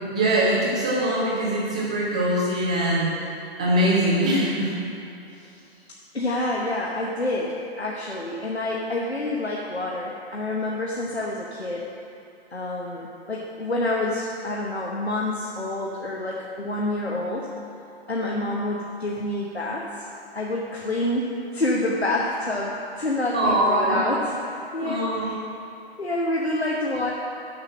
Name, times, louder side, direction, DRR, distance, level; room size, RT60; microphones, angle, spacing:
voice 1, 0.0-3.1 3.6-4.7 23.3-24.0 24.8-25.3, right 1 dB, 5° right, -6 dB, 0.3 m, -22 dB
voice 2, 6.1-11.9 12.5-17.5 18.1-19.9 20.3-24.4 24.7-25.4 26.0-27.1, left 1 dB, 90° left, -3 dB, 1.1 m, -27 dB
6.7 x 6.0 x 7.3 m, 2.7 s
figure-of-eight pair, 125°, 31 cm